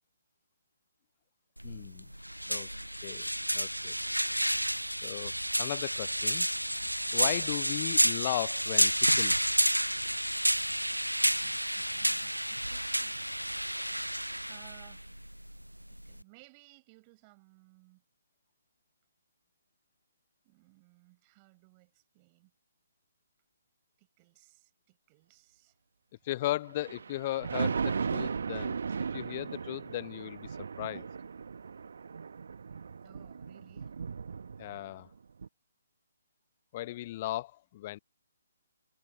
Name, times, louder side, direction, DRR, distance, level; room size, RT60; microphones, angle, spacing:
voice 1, 1.6-2.1 2.5-2.7 3.0-3.3 3.5-4.0 5.0-5.3 5.6-6.5 7.1-9.4 26.2-28.8 29.1-31.1 34.6-35.1 36.7-38.0, left 15 dB, 30° left, 0.7 m, -36 dB
sound 1, 1.6-16.2, equal, 90° right, 0.5 m, -30 dB
voice 2, 2.4-2.9 7.2-7.5 11.2-13.3 14.5-15.0 15.9-18.0 20.4-22.5 24.0-25.8 33.0-34.0, right 29 dB, 25° right, 6.7 m, -60 dB
Thunder, 26.7-35.0 35.4-35.5, right 5 dB, 55° right, 1.3 m, -36 dB
figure-of-eight pair, 135°, 0 cm